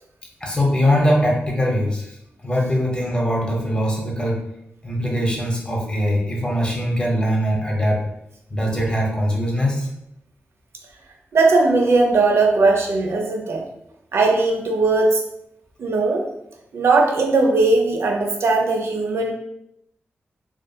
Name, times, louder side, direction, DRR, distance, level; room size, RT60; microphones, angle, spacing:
voice 1, 0.4-2.1 2.4-4.4 4.8-8.0 8.5-9.9, equal, 20° left, -2 dB, 0.7 m, -21 dB
voice 2, 11.3-13.6 14.1-15.2 15.8-16.2 16.7-19.3, right 3 dB, 70° right, 2 dB, 0.5 m, -18 dB
2.6 x 2.4 x 2.2 m, 0.78 s
wide cardioid pair, 85°, 5 cm